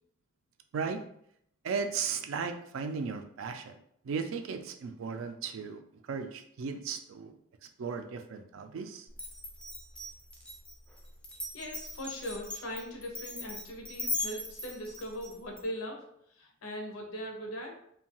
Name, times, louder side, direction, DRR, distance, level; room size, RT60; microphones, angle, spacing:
voice 1, 0.7-1.0 1.6-3.8 4.0-7.3 7.8-9.1, right 5 dB, 75° right, 7 dB, 0.3 m, -36 dB
Glass, 9.1-15.6, left 2 dB, 5° left, 0.3 m, -39 dB
voice 2, 11.5-17.7, equal, 90° left, 1 dB, 0.7 m, -40 dB
2.6 x 2.2 x 2.8 m, 0.70 s
head